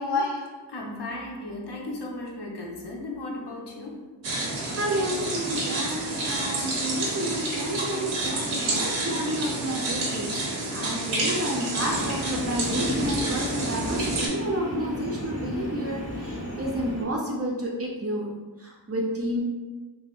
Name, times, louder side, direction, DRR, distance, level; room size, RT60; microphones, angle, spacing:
voice 1, 0.0-4.1 5.3-5.4 6.0-6.1, left 3 dB, 60° left, -1 dB, 0.6 m, -34 dB
sound 1, 4.2-14.3, right 2 dB, 90° right, 0.7 m, -29 dB
voice 2, 4.8-10.3 10.7-19.4, right 1 dB, 35° right, -1 dB, 0.4 m, -30 dB
Train, 11.8-17.0, equal, 25° left, 0.8 m, -32 dB
2.9 x 2.7 x 2.3 m, 1.3 s
wide cardioid pair, 90°, 46 cm